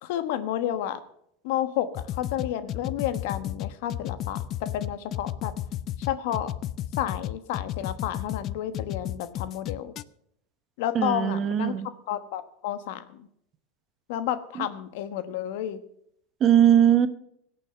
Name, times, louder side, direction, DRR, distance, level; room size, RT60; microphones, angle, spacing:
voice 1, 0.0-1.0 1.4-5.5 6.1-6.5 7.0-9.9 10.8-11.7 12.1-13.0 14.1-15.8, left 11 dB, 70° left, 13 dB, 1.1 m, -31 dB
sound 1, 1.9-10.0, left 12 dB, 40° left, 0.4 m, -32 dB
voice 2, 10.9-11.9 14.6-14.7 16.4-17.1, right 10 dB, 35° right, 13 dB, 1.0 m, -20 dB
17.0 x 6.9 x 6.7 m, 0.72 s
supercardioid pair, 125°, 0 cm